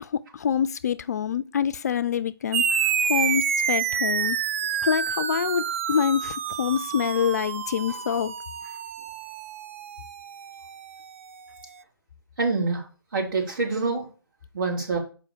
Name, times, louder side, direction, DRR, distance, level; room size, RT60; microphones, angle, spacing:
voice 1, 0.0-4.4 4.8-8.3, left 8 dB, 40° left, 0.4 m, -26 dB
sound 1, 2.5-11.4, right 7 dB, 30° right, 0.4 m, -28 dB
voice 2, 12.4-12.8 13.1-14.0 14.5-15.0, right 3 dB, 60° right, 3.5 m, -25 dB
6.6 x 5.0 x 5.1 m
figure-of-eight pair, 145°, 13 cm